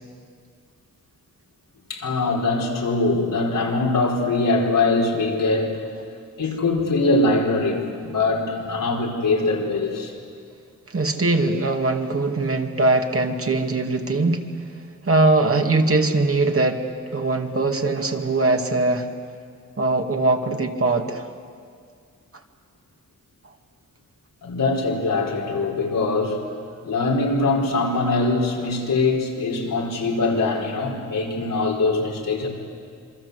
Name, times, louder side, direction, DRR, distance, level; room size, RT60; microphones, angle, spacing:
voice 1, 1.9-5.7 6.4-10.1 24.4-26.4 26.8-32.5, left 3 dB, 90° left, -2 dB, 4.8 m, -22 dB
voice 2, 10.9-14.4 15.0-19.1 19.8-21.3, right 2 dB, 45° right, 4 dB, 2.4 m, -21 dB
27.0 x 23.5 x 8.3 m, 2.2 s
cardioid pair, 70°, 32 cm